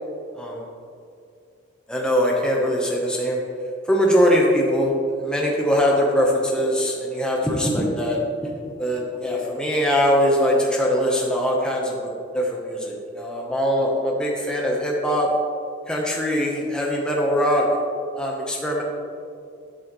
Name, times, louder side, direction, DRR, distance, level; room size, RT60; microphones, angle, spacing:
voice 1, 0.3-0.7 1.9-3.4 3.8-8.2 8.8-15.3 15.9-17.7 18.2-18.8, equal, 5° left, -2 dB, 0.9 m, -22 dB
11.0 x 5.7 x 3.1 m, 2.4 s
head